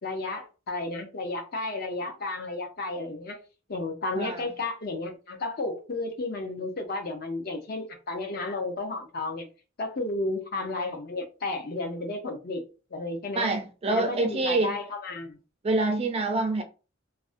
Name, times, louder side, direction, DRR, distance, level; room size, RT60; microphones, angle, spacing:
voice 1, 0.0-3.4 3.7-9.5 9.8-12.6 12.9-13.5 13.9-15.4, left 2 dB, 50° left, 0.6 m, -32 dB
voice 2, 4.1-4.5 13.4-14.8 15.6-16.6, right 2 dB, 30° right, 0.3 m, -26 dB
2.4 x 2.1 x 2.4 m
head